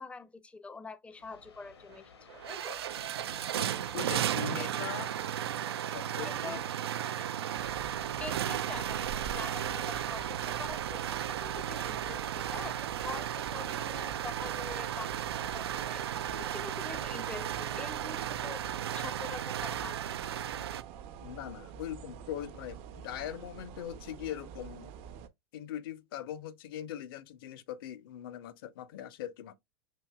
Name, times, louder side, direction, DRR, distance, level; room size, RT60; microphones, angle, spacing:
voice 1, 0.0-2.8 4.6-4.7 6.2-6.6 8.2-20.5, left 4 dB, 10° left, 0.5 m, -45 dB
sound 1, 1.1-14.5, left 5 dB, 85° left, 1.1 m, -56 dB
sound 2, 1.9-2.0 2.3-20.8, right 10 dB, 80° right, 0.4 m, -35 dB
voice 2, 3.6-5.1 5.9-6.6 8.5-8.6 21.2-24.9 25.5-29.6, left 11 dB, 60° left, 0.6 m, -41 dB
sound 3, 7.5-25.3, right 8 dB, 50° right, 0.7 m, -47 dB
5.8 x 2.8 x 2.3 m
hypercardioid pair, 90°, 13 cm